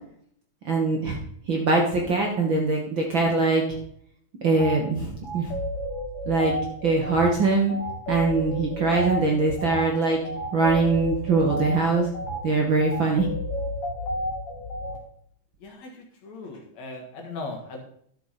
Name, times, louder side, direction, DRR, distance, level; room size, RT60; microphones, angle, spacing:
voice 1, 0.6-1.2 1.5-3.6 4.4-5.5 6.3-6.5 6.8-7.7 8.1-10.2 10.5-12.1 12.4-13.3, right 3 dB, 50° right, 0 dB, 1.6 m, -22 dB
sound 1, 4.6-4.8 5.2-15.0, equal, 50° left, 3.2 m, -32 dB
voice 2, 15.6-17.8, left 3 dB, 65° left, 1 dB, 2.9 m, -38 dB
12.0 x 6.6 x 4.2 m, 0.66 s
omnidirectional pair, 3.5 m